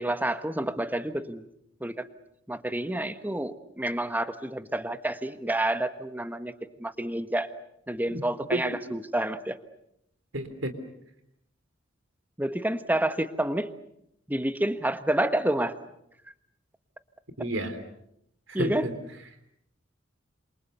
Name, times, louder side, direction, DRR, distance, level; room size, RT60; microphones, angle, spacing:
voice 1, 0.0-1.4 1.8-2.1 2.5-6.5 6.8-7.5 7.9-9.6 12.4-13.7 14.3-15.7 18.5-18.8, right 1 dB, 10° right, 11 dB, 1.3 m, -29 dB
voice 2, 10.3-10.7 17.4-17.8 18.5-18.9, right 1 dB, 70° right, 10 dB, 3.6 m, -31 dB
27.5 x 27.5 x 6.8 m, 0.76 s
head